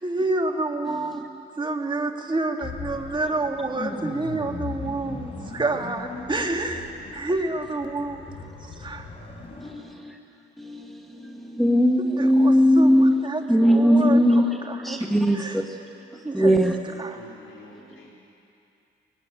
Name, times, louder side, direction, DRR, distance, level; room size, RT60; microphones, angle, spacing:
voice 1, 0.0-8.2 8.6-9.1 12.0-15.6 16.2-16.6 17.0-17.2, right 2 dB, 25° right, 3 dB, 2.1 m, -29 dB
sound 1, 2.6-9.7, left 3 dB, 30° left, 4.2 m, -38 dB
voice 2, 9.6-10.1 10.6-13.1 13.5-14.5 14.8-15.6 16.3-16.7, equal, ahead, 2 dB, 1.4 m, -19 dB
voice 3, 17.1-18.1, left 3 dB, 80° left, -2 dB, 4.0 m, -48 dB
21.0 x 17.0 x 9.2 m, 2.7 s
cardioid pair, 90°, 20 cm